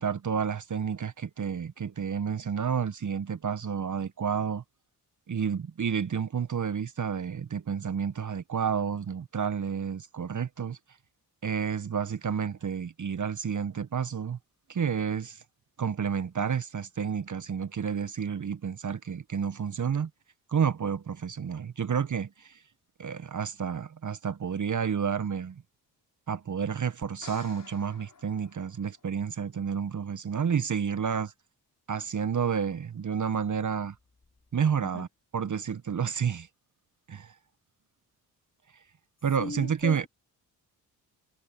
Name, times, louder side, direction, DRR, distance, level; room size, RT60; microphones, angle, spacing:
voice 1, 0.0-4.6 5.3-10.8 11.4-14.4 14.7-15.4 15.8-20.1 20.5-22.6 23.0-25.6 26.3-31.3 31.9-33.9 34.5-35.1 35.3-36.5 37.1-37.3 39.2-40.1, right 7 dB, 45° right, 1.2 m, -30 dB
sound 1, 27.0-29.3 32.7-32.8, left 5 dB, 45° left, 6.7 m, -51 dB
voice 2, 39.4-40.1, left 3 dB, 25° left, 2.7 m, -37 dB
supercardioid pair, 50°, 44 cm